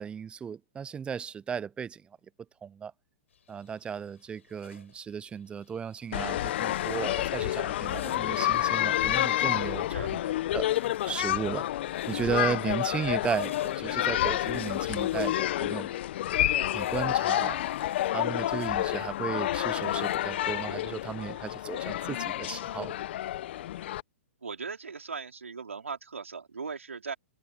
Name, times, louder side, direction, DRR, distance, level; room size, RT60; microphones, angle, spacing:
voice 1, 0.0-2.0 2.6-2.9 3.5-10.7 11.1-11.7 12.1-16.0 16.7-17.6 18.1-22.9, right 7 dB, 15° right, 0.6 m, -35 dB
sound 1, 3.3-21.3, left 8 dB, 70° left, 5.4 m, -54 dB
sound 2, 6.1-24.0, left 13 dB, 55° left, 1.1 m, -29 dB
voice 2, 24.4-27.1, right 5 dB, 85° right, 4.6 m, -38 dB
hypercardioid pair, 120°, 7 cm